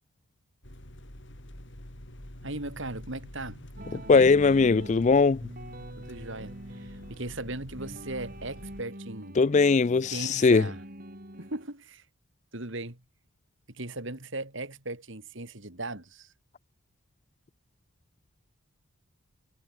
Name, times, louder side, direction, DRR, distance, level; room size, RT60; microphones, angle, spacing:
sound 1, 0.6-8.8, equal, 55° left, 5.1 m, -47 dB
voice 1, 2.4-3.6 3.9-4.3 6.0-9.4 10.1-10.8 11.4-12.0 12.5-13.0 13.7-16.3, right 2 dB, 55° right, 3.1 m, -38 dB
sound 2, 3.8-11.7, right 1 dB, 40° right, 5.9 m, -44 dB
voice 2, 3.9-5.4 9.4-10.6, left 4 dB, 30° left, 0.3 m, -20 dB
head